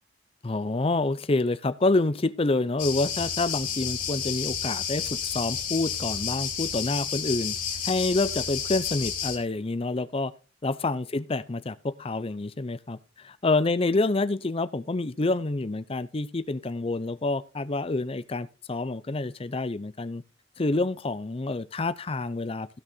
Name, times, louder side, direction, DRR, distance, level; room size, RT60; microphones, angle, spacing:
voice 1, 0.4-7.5 7.8-10.3 10.6-20.2 20.6-22.8, left 2 dB, 30° left, 0.5 m, -27 dB
sound 1, 2.8-9.4, left 7 dB, 45° left, 4.4 m, -31 dB
16.0 x 6.3 x 4.3 m
head